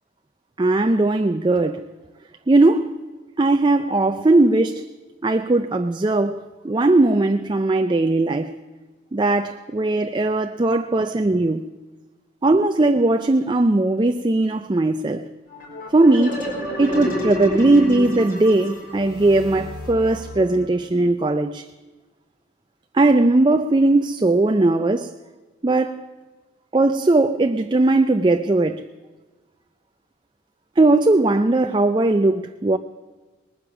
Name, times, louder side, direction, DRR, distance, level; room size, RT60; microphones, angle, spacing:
voice 1, 0.6-1.9 2.5-2.9 3.4-4.8 5.2-8.5 9.1-11.6 12.4-15.3 15.9-16.5 16.8-21.6 22.9-25.1 25.6-26.1 26.7-28.8 30.8-32.8, right 2 dB, 25° right, 0.4 m, -18 dB
sound 1, 15.5-20.9, equal, 50° left, 4.3 m, -30 dB
19.5 x 9.9 x 7.1 m
head